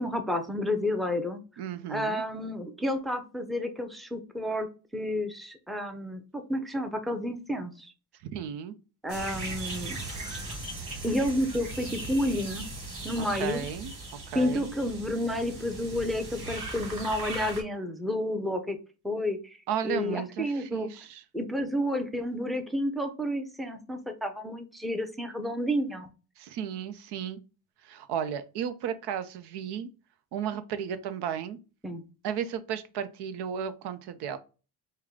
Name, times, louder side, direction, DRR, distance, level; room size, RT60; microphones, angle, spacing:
voice 1, 0.0-1.4 1.9-4.7 4.9-7.9 9.0-10.0 11.0-12.7 13.0-13.6 14.3-18.8 19.0-19.6 19.8-20.9 21.3-26.1 31.8-32.0, left 1 dB, ahead, 0.6 m, -30 dB
voice 2, 1.6-2.2 8.3-8.7 13.4-13.9 14.3-14.7 19.7-21.2 26.4-27.4 27.8-29.9 30.3-31.6 32.2-34.4, right 8 dB, 80° right, 0.7 m, -34 dB
sound 1, 9.1-17.6, right 2 dB, 50° right, 2.2 m, -38 dB
4.8 x 2.2 x 3.6 m
cardioid pair, 110°, 40 cm